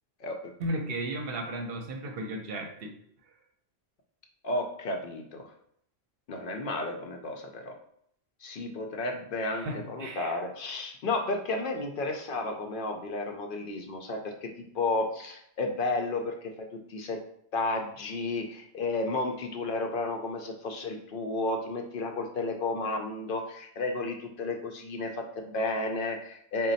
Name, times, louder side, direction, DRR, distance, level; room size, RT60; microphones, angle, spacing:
voice 1, 0.6-2.9 9.5-10.4, right 1 dB, 65° right, 4 dB, 0.8 m, -35 dB
voice 2, 4.4-5.5 6.3-7.8 8.4-17.2 17.5-26.7, left 2 dB, 60° left, 3 dB, 0.6 m, -32 dB
4.1 x 2.2 x 3.9 m, 0.68 s
omnidirectional pair, 1.1 m